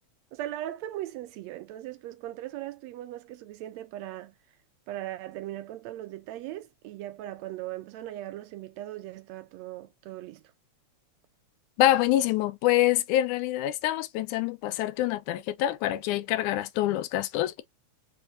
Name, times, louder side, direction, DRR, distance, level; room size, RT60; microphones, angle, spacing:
voice 1, 0.3-4.3 4.9-10.4, right 14 dB, 80° right, 1.7 m, -39 dB
voice 2, 11.8-17.6, left 14 dB, 90° left, 2.0 m, -26 dB
4.6 x 3.4 x 2.5 m
omnidirectional pair, 3.4 m